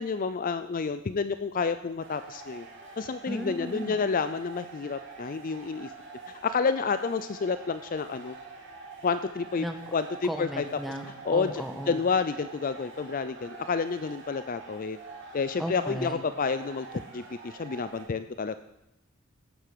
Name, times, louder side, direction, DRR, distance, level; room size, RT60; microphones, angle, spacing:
voice 1, 0.0-2.7 3.0-5.9 6.3-8.4 9.0-9.6 9.9-10.6 11.2-15.0 15.3-18.6, left 5 dB, 40° left, 12 dB, 0.4 m, -29 dB
sound 1, 2.0-18.1, right 4 dB, 55° right, 2.8 m, -46 dB
voice 2, 3.3-4.0 9.6-9.8 10.2-12.0 15.6-16.2, equal, ahead, 4 dB, 1.4 m, -35 dB
17.5 x 8.0 x 6.7 m, 0.90 s
head